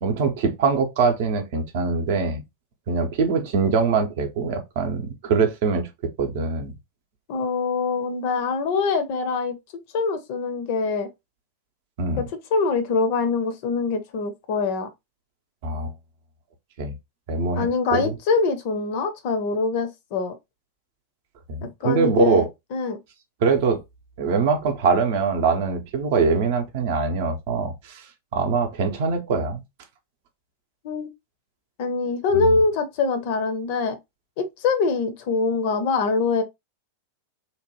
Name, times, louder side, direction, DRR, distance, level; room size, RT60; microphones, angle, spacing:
voice 1, 0.0-2.4 2.9-5.9 6.2-6.7 12.0-12.2 15.6-15.9 16.8-16.9 17.3-18.1 21.5-22.4 23.4-23.8 24.2-28.0 28.3-29.6 32.3-32.5, right 5 dB, 50° right, 0.6 m, -23 dB
voice 2, 7.3-9.6 9.9-11.1 12.2-12.3 12.5-14.9 17.6-20.3 21.8-22.4 22.7-23.0 30.8-31.1 31.8-34.0 34.4-36.4, left 4 dB, 45° left, 0.5 m, -24 dB
2.9 x 2.1 x 2.8 m
figure-of-eight pair, 90°, 0 cm